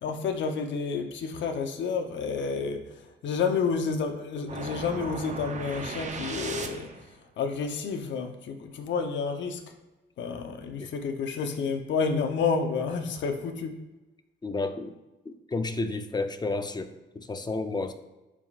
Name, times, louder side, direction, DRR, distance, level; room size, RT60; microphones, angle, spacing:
voice 1, 0.0-6.9 7.4-9.6 10.2-13.7, left 5 dB, 70° left, 5 dB, 0.9 m, -30 dB
sound 1, 4.5-7.1, right 4 dB, 35° right, 0.8 m, -37 dB
voice 2, 14.4-15.0 15.2-17.9, left 3 dB, 20° left, 8 dB, 0.6 m, -31 dB
10.5 x 5.0 x 2.5 m, 1.1 s
cardioid pair, 90°, 20 cm